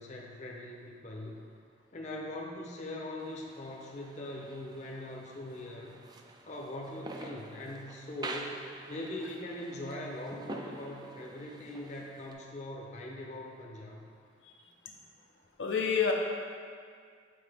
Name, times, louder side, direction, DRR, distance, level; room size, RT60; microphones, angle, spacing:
voice 1, 0.0-1.4 1.9-6.0 6.4-8.6 8.9-14.0, left 1 dB, 40° left, -1 dB, 0.7 m, -41 dB
sound 1, 3.2-12.3, right 2 dB, 20° right, 0.3 m, -47 dB
voice 2, 15.6-16.1, left 6 dB, 85° left, 0 dB, 0.7 m, -29 dB
7.8 x 4.3 x 3.4 m, 2.1 s
head